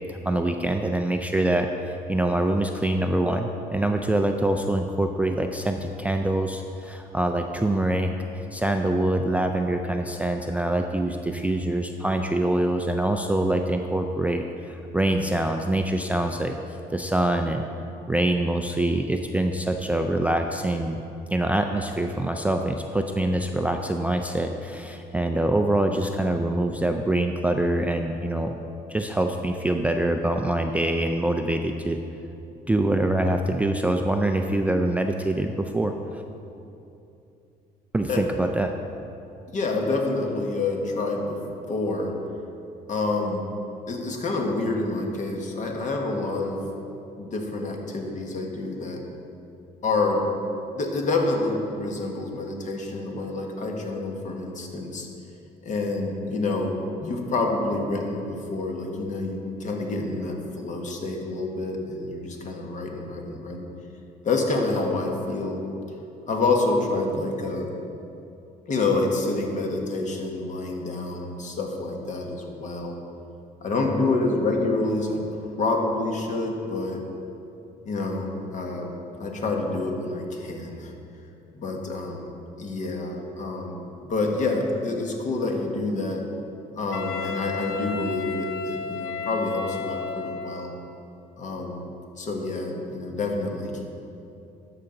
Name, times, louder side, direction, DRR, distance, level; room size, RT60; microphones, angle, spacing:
voice 1, 0.1-16.5 16.9-17.6 18.1-21.0 21.3-28.6 28.9-32.0 32.7-36.2 37.9-38.7, right 1 dB, 10° right, 4 dB, 0.4 m, -25 dB
voice 2, 39.5-41.4 41.7-42.1 42.9-43.5 43.9-46.6 47.2-49.0 49.8-50.3 50.7-55.1 55.6-63.7 64.2-65.6 66.3-67.8 68.7-73.0 73.6-77.0 77.8-80.9 81.5-82.3 82.6-86.2 86.7-90.8 91.4-91.9 92.2-93.8, left 2 dB, 45° left, 1 dB, 1.4 m, -27 dB
Wind instrument woodwind instrument, 86.9-90.7, left 6 dB, 80° left, 0.9 m, -33 dB
12.5 x 5.9 x 3.8 m, 2.7 s
cardioid pair, 110°, 17 cm